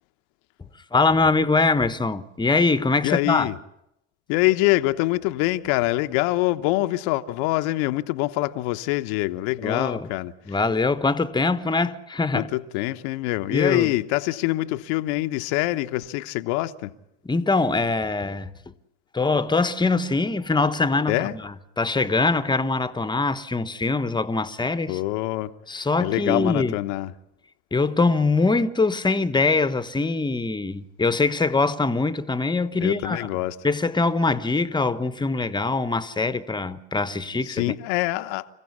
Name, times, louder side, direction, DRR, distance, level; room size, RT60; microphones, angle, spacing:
voice 1, 0.6-3.5 9.6-10.1 10.5-12.5 13.5-13.9 17.2-18.5 19.1-25.0 25.7-26.7 27.7-33.3 33.6-37.6, left 3 dB, 15° left, 1.2 m, -23 dB
voice 2, 3.0-3.5 4.3-10.3 12.3-16.9 21.1-21.3 24.9-25.5 26.0-27.1 32.8-33.5 37.4-38.5, left 18 dB, 65° left, 1.1 m, -25 dB
26.5 x 15.5 x 9.7 m
hypercardioid pair, 75°, 35 cm